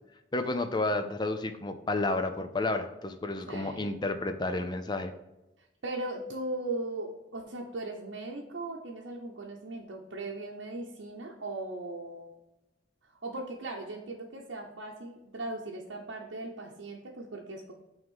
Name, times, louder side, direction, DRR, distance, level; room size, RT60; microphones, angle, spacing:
voice 1, 0.3-5.1, left 2 dB, 25° left, 8 dB, 0.4 m, -31 dB
voice 2, 3.5-4.0 5.8-12.4 13.1-17.7, right 2 dB, 85° right, -2 dB, 0.8 m, -38 dB
6.0 x 3.6 x 5.4 m, 0.95 s
head